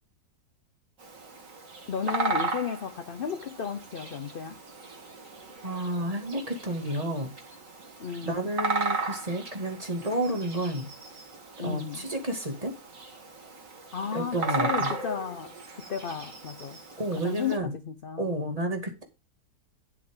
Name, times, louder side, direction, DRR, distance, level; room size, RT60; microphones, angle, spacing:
Bird vocalization bird call bird song, 1.0-17.6, right 3 dB, 50° right, 2.4 m, -36 dB
voice 1, 1.9-4.6 8.0-8.5 11.6-12.1 13.9-16.8 17.2-18.4, left 7 dB, 55° left, 0.6 m, -34 dB
voice 2, 5.6-7.3 8.2-10.9 11.6-12.7 14.1-14.9 17.0-17.8 18.2-19.0, right 1 dB, 20° right, 2.3 m, -31 dB
10.5 x 7.5 x 3.7 m
omnidirectional pair, 1.8 m